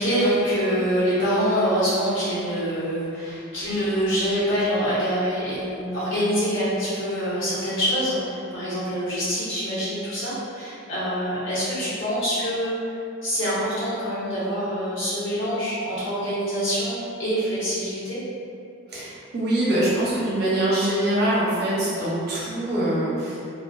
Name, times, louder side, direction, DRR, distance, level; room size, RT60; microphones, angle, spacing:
voice 1, 0.0-12.8 13.2-18.2, equal, 65° left, -12 dB, 1.1 m, -25 dB
voice 2, 18.9-23.4, right 1 dB, 50° right, -8 dB, 0.7 m, -24 dB
2.4 x 2.4 x 2.3 m, 2.5 s
head